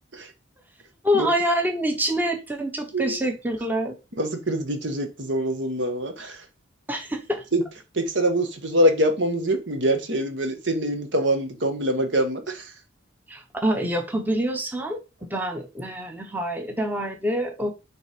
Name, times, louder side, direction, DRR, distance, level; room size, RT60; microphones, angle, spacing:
voice 1, 1.0-3.9 6.9-7.4 13.3-17.7, equal, 10° right, 4 dB, 0.8 m, -26 dB
voice 2, 4.2-6.4 7.5-7.6 8.0-12.6, right 1 dB, 70° right, 6 dB, 1.3 m, -24 dB
7.0 x 3.3 x 5.0 m, 0.28 s
head